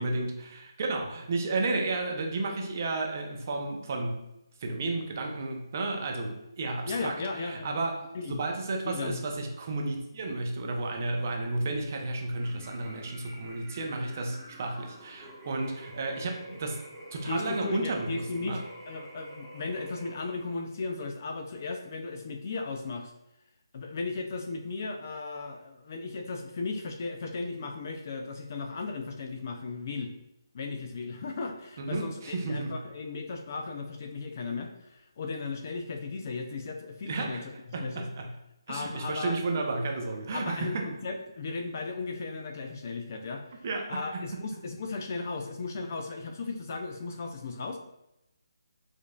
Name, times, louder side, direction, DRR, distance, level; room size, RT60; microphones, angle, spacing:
voice 1, 0.0-4.3 4.6-16.8 17.1-18.6 31.8-32.8 37.0-37.4 37.7-38.3 38.7-40.9 43.6-44.1, right 2 dB, 35° right, 2 dB, 0.6 m, -32 dB
voice 2, 6.8-7.8 8.1-8.4 8.8-9.2 17.2-18.6 18.9-23.1 23.7-30.1 30.5-37.4 37.8-38.1 38.7-39.4 40.3-43.4 43.9-47.8, left 3 dB, 35° left, 4 dB, 0.4 m, -36 dB
sound 1, 12.3-20.7, right 1 dB, 5° right, 1.0 m, -48 dB
4.9 x 2.5 x 2.2 m, 0.85 s
hypercardioid pair, 165°, 2 cm